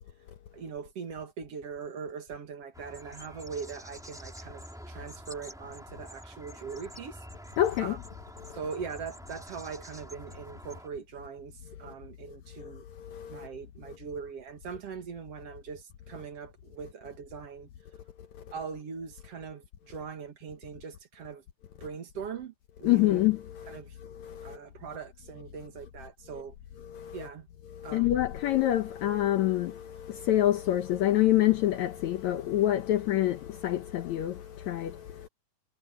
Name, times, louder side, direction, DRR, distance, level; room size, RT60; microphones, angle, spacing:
voice 1, 0.5-7.2 7.8-8.0 8.5-12.8 13.3-17.7 18.5-21.4 21.8-23.2 23.7-24.0 24.4-26.5 27.1-27.5 27.8-28.3, right 6 dB, 50° right, 2.0 m, -41 dB
sound 1, 2.7-10.9, equal, ahead, 1.9 m, -47 dB
voice 2, 7.6-8.0 11.9-12.0 12.6-13.5 22.8-24.6 26.3-26.4 26.8-27.3 27.7-35.3, left 14 dB, 85° left, 1.6 m, -27 dB
omnidirectional pair, 4.5 m